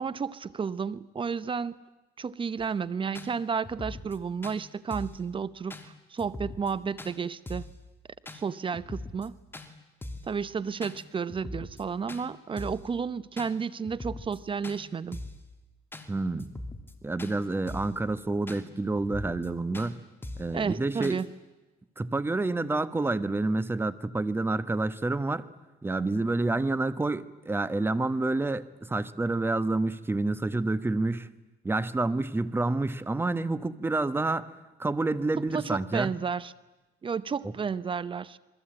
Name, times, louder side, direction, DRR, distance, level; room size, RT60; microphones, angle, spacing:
voice 1, 0.0-1.8 2.2-7.6 8.3-9.3 10.3-15.2 20.5-21.3 35.5-36.5 37.0-38.4, right 6 dB, 30° right, 17 dB, 0.8 m, -32 dB
sound 1, 2.6-2.7 3.1-3.3 3.6-4.2 4.4-4.6 4.9-5.2 5.7-5.9 6.2-6.7 7.0-7.1 7.5-7.8 8.3-8.4 8.7-9.3 9.5-9.7 10.0-10.3 10.8-11.0 11.3-11.8 12.1-12.2 12.6-12.9 13.4-13.5 13.8-14.4 14.6-14.8 15.1-15.4 15.9-16.1 16.4-16.9 17.2-17.3 17.7-18.0 18.5-18.6 18.9-19.5 19.7-19.9 20.2-20.5 21.0-21.2, left 2 dB, 15° left, 2.6 m, -41 dB
voice 2, 16.1-16.5 17.0-20.0 20.4-21.2 22.0-25.5 25.8-31.3 31.6-34.5 34.8-36.1, right 2 dB, 15° right, 14 dB, 1.2 m, -28 dB
27.5 x 22.0 x 8.8 m, 1.1 s
cardioid pair, 110°, 17 cm